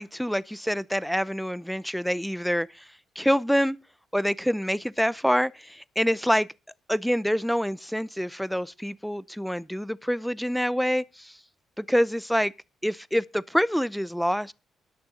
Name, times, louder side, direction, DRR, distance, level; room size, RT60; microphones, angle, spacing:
voice 1, 0.0-2.8 3.2-3.8 4.1-6.5 6.9-11.4 11.8-12.5 12.8-14.5, equal, ahead, 0.6 m, -26 dB
20.0 x 6.8 x 3.8 m
cardioid pair, 110°, 0 cm